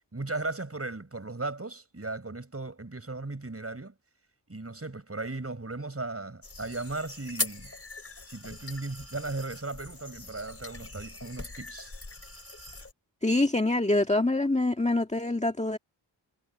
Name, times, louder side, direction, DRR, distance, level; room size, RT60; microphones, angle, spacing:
voice 1, 0.1-3.9 4.5-7.7 8.3-11.9, right 2 dB, 30° right, 6.5 m, -36 dB
sound 1, 6.4-12.9, left 2 dB, 30° left, 3.8 m, -40 dB
voice 2, 13.2-15.8, left 2 dB, 15° left, 1.8 m, -25 dB
wide cardioid pair, 110°, 47 cm